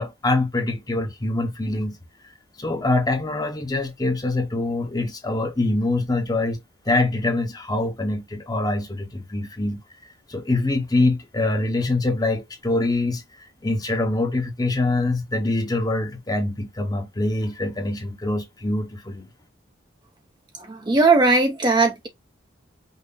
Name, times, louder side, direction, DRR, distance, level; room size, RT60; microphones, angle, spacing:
voice 1, 0.0-2.0 2.6-6.6 6.9-9.8 10.3-13.2 13.6-19.3, left 2 dB, 20° left, 0.9 m, -24 dB
voice 2, 20.6-22.1, right 3 dB, 20° right, 0.6 m, -18 dB
5.6 x 2.0 x 3.9 m
head